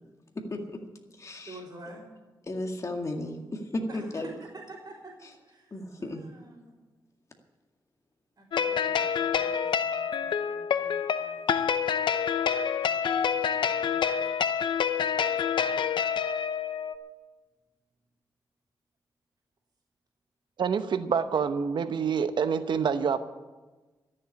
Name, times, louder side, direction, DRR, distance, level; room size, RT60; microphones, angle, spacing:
voice 1, 0.3-0.8 1.2-1.6 2.4-4.3 5.2-5.3 5.7-6.2, left 1 dB, 40° left, 2 dB, 2.0 m, -34 dB
voice 2, 1.5-2.1 3.9-5.7 6.0-6.7 8.4-11.5 12.8-14.3, right 2 dB, 45° right, -8 dB, 3.7 m, -49 dB
sound 1, 8.5-17.0, left 7 dB, 80° left, 0.7 m, -27 dB
voice 3, 20.6-23.2, right 6 dB, 70° right, 11 dB, 0.9 m, -27 dB
13.0 x 7.6 x 9.8 m, 1.2 s
cardioid pair, 65°, 8 cm